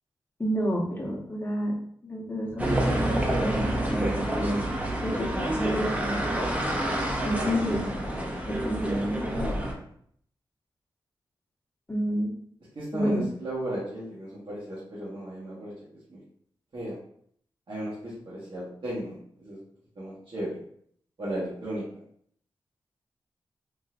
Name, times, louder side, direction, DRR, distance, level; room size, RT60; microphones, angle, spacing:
voice 1, 0.4-1.7 2.0-4.6 5.0-6.2 7.2-7.8 8.4-9.3 11.9-12.4 12.9-13.3, equal, 25° left, -2 dB, 1.0 m, -29 dB
sound 1, 2.6-9.7, right 1 dB, 15° right, 0.7 m, -28 dB
voice 2, 7.3-9.9 12.7-15.7 16.1-16.2 16.7-17.0 17.7-19.6 19.9-20.6 21.2-21.8, right 1 dB, 60° right, -9 dB, 1.3 m, -36 dB
3.8 x 2.8 x 2.4 m, 0.64 s
cardioid pair, 65°, 9 cm